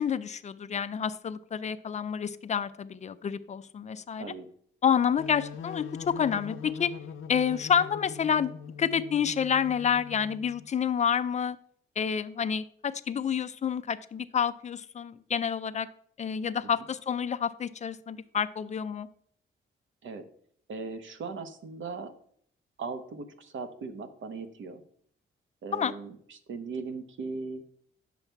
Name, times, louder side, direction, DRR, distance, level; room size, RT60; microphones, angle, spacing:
voice 1, 0.0-4.3 4.8-6.9 7.3-8.5 8.8-11.6 12.0-15.9 16.2-19.1 25.7-25.9, left 7 dB, 35° left, 13 dB, 0.4 m, -29 dB
voice 2, 4.2-4.5 20.0-20.2 20.7-22.1 22.8-24.8 25.6-27.6, right 4 dB, 70° right, 9 dB, 1.0 m, -38 dB
sound 1, 5.2-10.7, left 7 dB, 80° left, 0.6 m, -42 dB
9.8 x 7.2 x 4.5 m, 0.63 s
wide cardioid pair, 180°, 21 cm